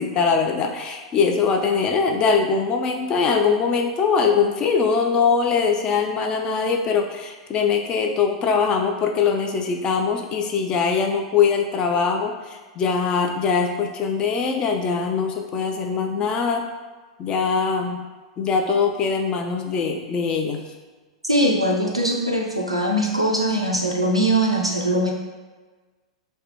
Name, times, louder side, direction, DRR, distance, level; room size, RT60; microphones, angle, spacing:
voice 1, 0.0-16.7 17.2-18.0 18.4-20.6, left 5 dB, 30° left, 3 dB, 0.3 m, -22 dB
voice 2, 21.2-25.1, right 1 dB, 90° right, -1 dB, 0.4 m, -21 dB
3.2 x 2.1 x 2.8 m, 1.3 s
figure-of-eight pair, 95°, 3 cm